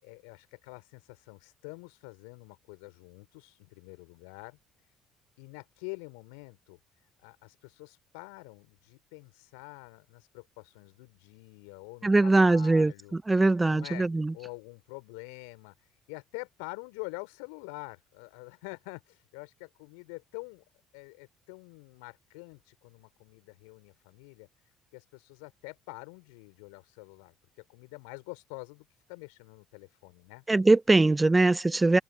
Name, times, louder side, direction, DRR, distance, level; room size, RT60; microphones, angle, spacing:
voice 1, 0.0-4.9 5.4-6.8 7.2-14.1 14.3-20.6 20.9-30.4, left 36 dB, 70° left, 5.6 m, -46 dB
voice 2, 12.0-12.9 13.3-14.3 30.5-32.0, right 2 dB, 15° right, 1.2 m, -21 dB
figure-of-eight pair, 55°, 0 cm